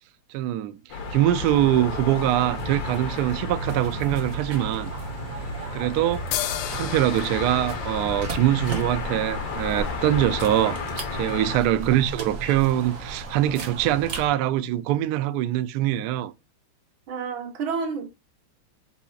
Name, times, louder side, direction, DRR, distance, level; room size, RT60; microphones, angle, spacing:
voice 1, 0.3-0.8 1.1-4.9 5.7-10.8 11.1-16.3, right 13 dB, 90° right, 0.8 m, -23 dB
sound 1, 0.9-11.6, left 5 dB, 55° left, 1.3 m, -34 dB
sound 2, 1.3-14.3, right 2 dB, 50° right, 1.2 m, -35 dB
sound 3, 6.3-9.9, left 12 dB, 85° left, 1.5 m, -35 dB
voice 2, 17.1-18.1, right 5 dB, 70° right, 1.9 m, -30 dB
4.7 x 4.2 x 2.3 m
omnidirectional pair, 2.3 m